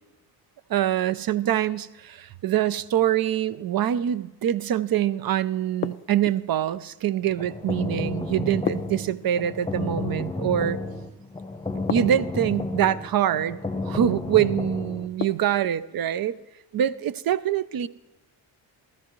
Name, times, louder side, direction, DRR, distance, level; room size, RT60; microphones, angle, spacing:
voice 1, 0.7-10.8 11.9-16.4 16.7-17.9, right 11 dB, 50° right, 16 dB, 0.6 m, -24 dB
sound 1, 5.8-6.6 8.7-9.7 11.9-12.6 15.2-15.8, left 8 dB, 30° left, 0.4 m, -33 dB
sound 2, 7.2-15.1, left 2 dB, 10° left, 0.8 m, -31 dB
16.0 x 13.0 x 3.1 m, 1.0 s
cardioid pair, 70°, 45 cm